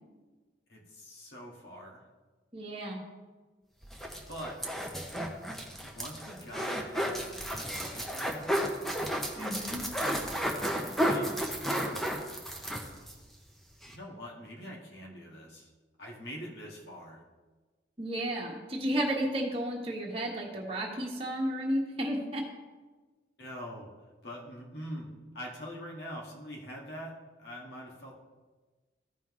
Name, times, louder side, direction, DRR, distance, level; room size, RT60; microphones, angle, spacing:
voice 1, 0.7-2.0 4.3-4.6 5.8-8.5 10.7-11.4 13.8-15.7 16.0-17.2 23.4-23.9 24.2-28.2, equal, 70° left, -2 dB, 1.8 m, -44 dB
voice 2, 2.5-3.0 9.4-9.8 18.0-22.4, equal, 30° right, -2 dB, 1.6 m, -32 dB
sound 1, 3.8-13.2 13.5-13.6 13.8-14.0, equal, ahead, 0.8 m, -33 dB
14.5 x 5.5 x 3.2 m, 1.3 s
head